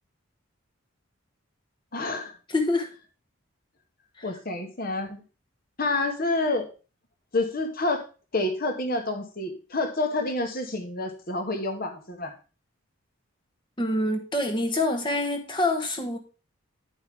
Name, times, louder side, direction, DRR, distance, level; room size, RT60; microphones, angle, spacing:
voice 1, 1.9-2.3 4.2-5.2 5.8-6.7 7.3-8.0 8.3-12.3, left 2 dB, 45° left, 5 dB, 1.2 m, -28 dB
voice 2, 2.5-2.9 4.2-4.3 13.8-16.2, left 2 dB, 20° left, 4 dB, 1.0 m, -26 dB
10.0 x 5.4 x 3.6 m, 0.34 s
head